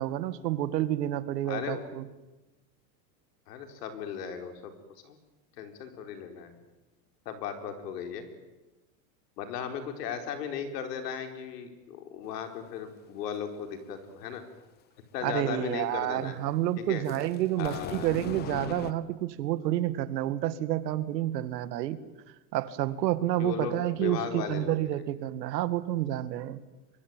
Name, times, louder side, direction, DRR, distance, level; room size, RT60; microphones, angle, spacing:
voice 1, 0.0-2.1 15.2-22.0 22.5-26.6, right 13 dB, 90° right, 13 dB, 2.1 m, -29 dB
voice 2, 1.4-1.8 3.5-4.7 5.0-5.2 5.6-6.5 7.2-8.2 9.4-14.4 15.1-16.3 16.8-17.0 17.6-18.1 23.4-24.8, left 8 dB, 75° left, 6 dB, 4.9 m, -36 dB
sound 1, 17.0-18.9, left 10 dB, 20° left, 0.9 m, -39 dB
24.0 x 23.5 x 9.2 m, 1.1 s
supercardioid pair, 170°, 48 cm